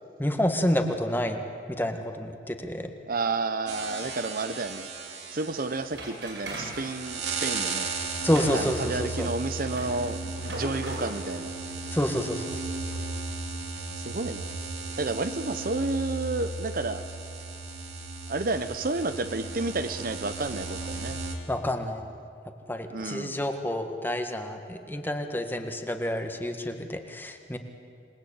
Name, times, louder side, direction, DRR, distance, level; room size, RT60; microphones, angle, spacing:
voice 1, 0.2-1.4 1.8-2.9 8.2-9.3 11.9-12.6 21.5-22.0 22.7-27.6, left 1 dB, 10° left, 6 dB, 1.7 m, -28 dB
voice 2, 3.1-4.9 5.3-7.9 8.5-11.5 14.0-14.5 15.0-17.0 18.3-21.2 22.9-23.4, right 3 dB, 50° right, 10 dB, 0.9 m, -31 dB
sound 1, 3.7-21.4, right 3 dB, 70° right, 3.3 m, -35 dB
sound 2, 5.9-6.9 8.2-11.2 11.8-12.0 12.6-13.0, right 1 dB, 90° right, 7.8 m, -38 dB
27.5 x 20.0 x 8.8 m, 2.5 s
head